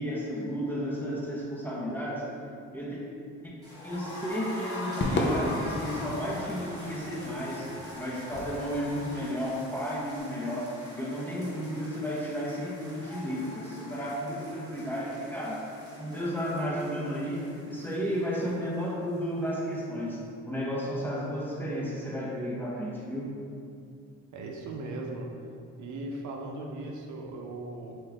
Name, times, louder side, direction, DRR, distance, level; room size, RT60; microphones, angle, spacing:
voice 1, 0.0-2.3 2.7-3.0 3.4-3.5 3.8-7.7 8.0-15.7 16.0-23.3, equal, 5° left, -5 dB, 0.9 m, -33 dB
sound 1, 3.6-19.5 19.7-19.8 20.1-20.2, left 1 dB, 10° right, 1.4 m, -43 dB
Crowd / Fireworks, 5.0-9.5, left 1 dB, 40° left, 0.6 m, -34 dB
Knock, 8.3-9.0, right 1 dB, 30° right, 0.6 m, -45 dB
voice 2, 24.3-25.4 25.8-28.0, right 2 dB, 75° right, 1 dB, 0.6 m, -38 dB
5.5 x 2.6 x 3.5 m, 2.4 s
cardioid pair, 90°, 30 cm